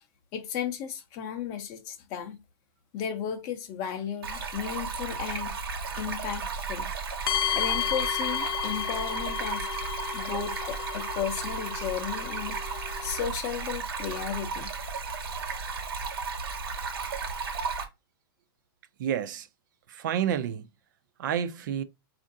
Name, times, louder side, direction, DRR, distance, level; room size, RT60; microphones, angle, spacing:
voice 1, 0.3-2.4 2.9-5.6 5.9-6.9 7.5-9.7 10.1-12.6 13.0-14.7, left 8 dB, 30° left, 0.5 m, -34 dB
Stream, 4.2-17.8, right 5 dB, 80° right, 1.2 m, -34 dB
sound 1, 7.3-13.2, left 11 dB, 75° left, 0.4 m, -33 dB
voice 2, 19.0-19.5 19.9-20.7 21.2-21.8, right 9 dB, 55° right, 0.4 m, -29 dB
4.3 x 2.5 x 2.6 m
supercardioid pair, 165°, 12 cm